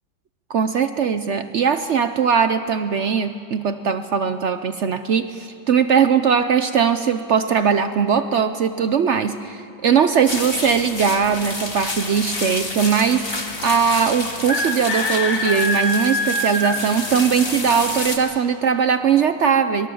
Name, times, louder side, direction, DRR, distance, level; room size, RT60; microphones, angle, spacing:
voice 1, 0.5-19.9, right 7 dB, 80° right, 10 dB, 0.6 m, -20 dB
sound 1, 10.3-18.2, left 2 dB, 30° left, 2.2 m, -26 dB
26.5 x 21.5 x 7.1 m, 2.9 s
omnidirectional pair, 2.1 m